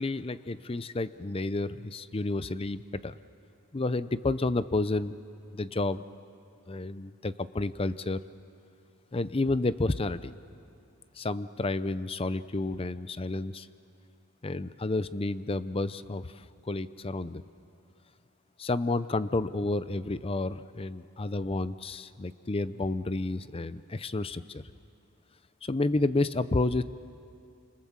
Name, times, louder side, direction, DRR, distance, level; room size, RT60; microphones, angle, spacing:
voice 1, 0.0-3.2 3.7-5.2 5.5-6.0 6.7-8.2 9.1-10.3 11.2-13.7 14.4-17.4 18.6-24.6 25.6-26.8, left 2 dB, 25° left, 14 dB, 0.5 m, -30 dB
27.0 x 26.0 x 7.3 m, 2.6 s
head